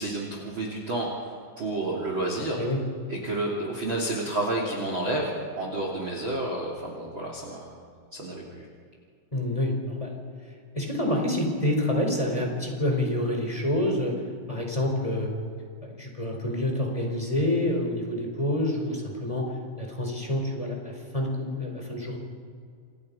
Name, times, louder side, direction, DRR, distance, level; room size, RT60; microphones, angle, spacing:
voice 1, 0.0-2.6 3.1-7.8 8.1-8.7, right 2 dB, 30° right, -1 dB, 3.1 m, -30 dB
voice 2, 9.3-10.2 10.7-14.1 14.5-15.3 15.8-19.5 19.8-22.2, left 1 dB, 5° left, 1 dB, 4.1 m, -27 dB
29.0 x 27.5 x 5.6 m, 2.3 s
omnidirectional pair, 5.3 m